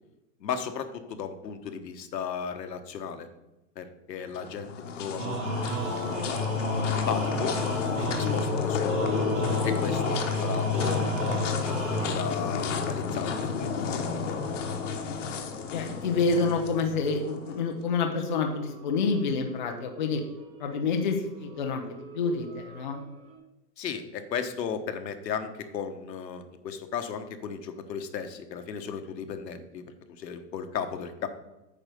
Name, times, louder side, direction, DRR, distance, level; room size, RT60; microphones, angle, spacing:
voice 1, 0.4-3.3 3.8-5.4 5.6-6.3 6.9-7.6 8.0-9.3 9.6-11.0 11.6-14.4 23.8-29.8 30.2-31.3, left 7 dB, 75° left, 7 dB, 1.3 m, -35 dB
sound 1, 4.3-17.6, left 6 dB, 45° left, 1.2 m, -30 dB
sound 2, 5.2-12.6, right 3 dB, 80° right, 3.0 m, -33 dB
sound 3, 5.8-23.4, right 1 dB, 15° right, 1.5 m, -48 dB
voice 2, 15.7-20.2 20.6-21.8 22.1-23.0, left 4 dB, 30° left, 3 dB, 0.6 m, -28 dB
9.0 x 4.9 x 6.6 m, 0.96 s
hypercardioid pair, 175°, 50 cm